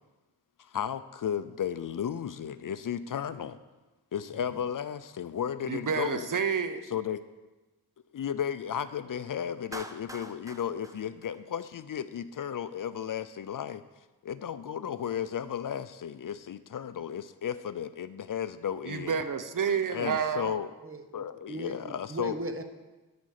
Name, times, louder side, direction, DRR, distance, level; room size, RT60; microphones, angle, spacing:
voice 1, 0.6-3.6 4.1-6.3 6.9-7.2 8.1-13.8 14.2-19.2 19.9-20.7 21.1-22.4, left 9 dB, 55° left, 13 dB, 0.5 m, -34 dB
voice 2, 5.7-6.8 18.9-20.6, right 6 dB, 50° right, 10 dB, 0.8 m, -29 dB
Clapping, 9.7-12.0, right 1 dB, 10° right, 0.7 m, -45 dB
voice 3, 20.8-22.6, right 1 dB, 35° right, 7 dB, 1.1 m, -38 dB
12.5 x 5.2 x 6.5 m, 1.1 s
cardioid pair, 65°, 40 cm